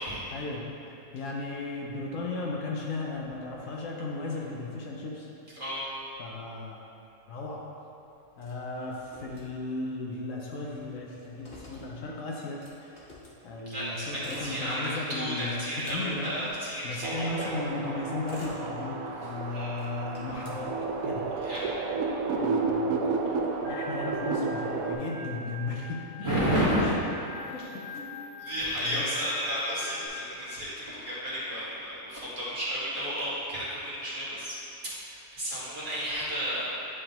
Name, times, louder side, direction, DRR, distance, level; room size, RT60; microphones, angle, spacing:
voice 1, 0.3-5.3 6.2-6.8 7.3-7.6 8.4-12.9 13.4-16.5 16.8-20.8 21.0-21.3 22.3-23.0 23.6-26.0 26.8-27.0 27.5-27.6 27.9-28.1 28.8-29.0, left 3 dB, 70° left, -2 dB, 1.1 m, -36 dB
voice 2, 5.6-5.9 13.7-17.5 19.5-19.7 21.4-21.8 26.2-26.9 28.4-36.8, equal, 35° right, -10 dB, 1.6 m, -32 dB
Motor vehicle (road), 8.4-10.0 10.3-10.4 10.6-13.4 14.0-15.1 15.5-17.3 17.9-19.3 19.7-21.3, left 1 dB, 45° left, 1.1 m, -50 dB
sound 1, 17.0-25.0, right 4 dB, 80° right, 1.0 m, -31 dB
Organ, 23.6-30.1, left 2 dB, 10° right, 0.8 m, -43 dB
9.7 x 3.7 x 2.9 m, 2.7 s
omnidirectional pair, 1.5 m